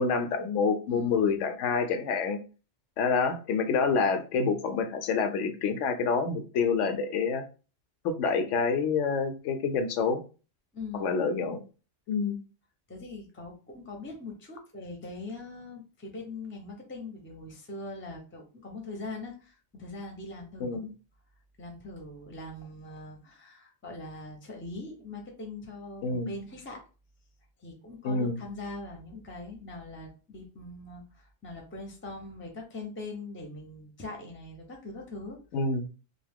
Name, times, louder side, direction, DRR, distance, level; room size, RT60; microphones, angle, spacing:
voice 1, 0.0-2.4 3.0-7.4 8.0-10.2 11.0-11.6 12.1-12.4 20.6-20.9 26.0-26.3 28.0-28.4 35.5-35.9, left 5 dB, 85° left, 8 dB, 0.9 m, -27 dB
voice 2, 0.9-1.5 10.7-11.1 12.9-20.8 21.6-26.8 27.6-35.4, left 2 dB, 15° left, 1 dB, 0.5 m, -42 dB
2.6 x 2.3 x 3.4 m, 0.35 s
omnidirectional pair, 1.2 m